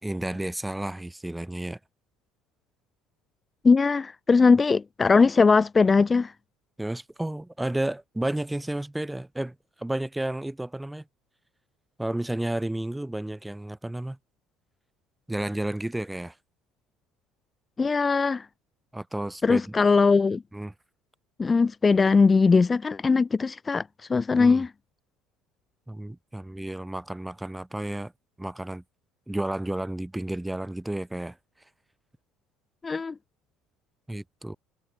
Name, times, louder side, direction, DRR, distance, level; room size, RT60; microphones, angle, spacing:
voice 1, 0.0-1.8 6.8-11.0 12.0-14.2 15.3-16.3 18.9-19.7 20.5-20.7 24.4-24.6 25.9-28.1 28.4-28.8 29.3-31.4 34.1-34.6, right 1 dB, 10° right, 3.4 m, -32 dB
voice 2, 3.6-6.3 17.8-18.5 19.4-20.4 21.4-23.8 24.1-24.7 32.8-33.1, left 4 dB, 25° left, 2.1 m, -20 dB
hypercardioid pair, 65°, 0 cm